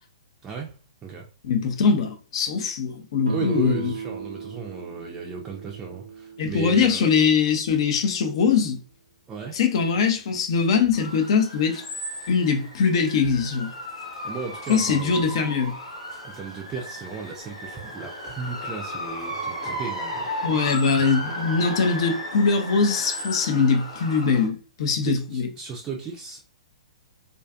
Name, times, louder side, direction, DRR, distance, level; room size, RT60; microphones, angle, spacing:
voice 1, 0.4-0.7 1.0-1.3 3.3-7.0 9.3-9.6 14.2-15.2 16.2-20.3 25.0-26.4, right 5 dB, 20° right, 0.4 m, -34 dB
voice 2, 1.4-3.9 6.4-8.8 9.5-11.8 12.3-13.7 14.7-15.7 20.4-25.5, left 5 dB, 50° left, 0.5 m, -22 dB
Guitar, 3.3-8.1, right 4 dB, 85° right, 0.3 m, -37 dB
sound 1, 10.9-24.5, equal, 70° left, 1.1 m, -35 dB
2.4 x 2.4 x 2.3 m
figure-of-eight pair, 115°, 3 cm